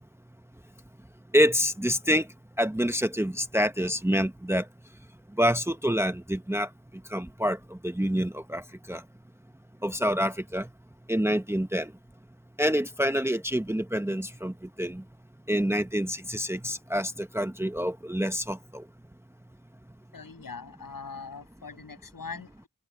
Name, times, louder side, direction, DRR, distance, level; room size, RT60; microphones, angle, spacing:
voice 1, 1.3-2.3 2.6-4.7 5.4-6.7 7.1-8.6 8.9-9.0 9.8-10.7 11.1-11.9 12.6-15.0 15.5-18.8, equal, 5° right, 1.0 m, -27 dB
voice 2, 20.1-22.7, left 5 dB, 75° left, 7.2 m, -41 dB
wide cardioid pair, 95°, 35 cm